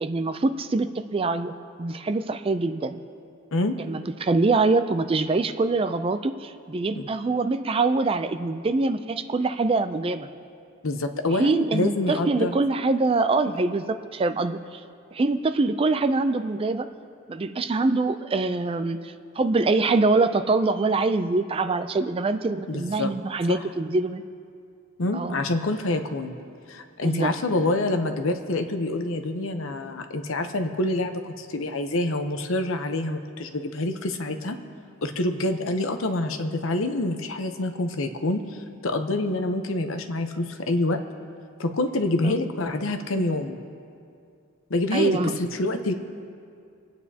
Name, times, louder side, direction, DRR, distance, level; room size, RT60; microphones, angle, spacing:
voice 1, 0.0-1.5 1.8-3.0 3.8-10.3 11.3-14.8 15.1-16.9 17.3-24.2 25.1-25.4 27.0-27.3 42.2-42.3 44.9-45.3, right 3 dB, 25° right, 10 dB, 0.4 m, -24 dB
voice 2, 10.8-12.6 22.7-23.1 23.5-23.6 25.0-26.3 26.7-34.6 35.0-38.4 38.8-41.0 41.6-43.6 44.7-45.9, left 2 dB, 75° left, 7 dB, 0.8 m, -26 dB
27.5 x 9.2 x 2.8 m, 2.4 s
head